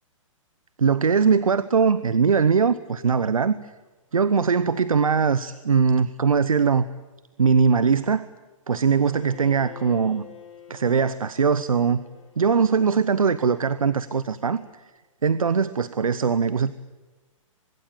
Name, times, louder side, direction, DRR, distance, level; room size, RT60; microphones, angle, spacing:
voice 1, 0.8-3.7 4.1-6.9 7.4-8.3 8.7-10.3 10.7-12.1 12.4-14.8 15.2-16.7, right 6 dB, 90° right, 15 dB, 0.9 m, -21 dB
Bowed string instrument, 8.9-14.9, left 9 dB, 65° left, 5.9 m, -48 dB
24.0 x 22.5 x 9.1 m, 1.2 s
hypercardioid pair, 125°, 17 cm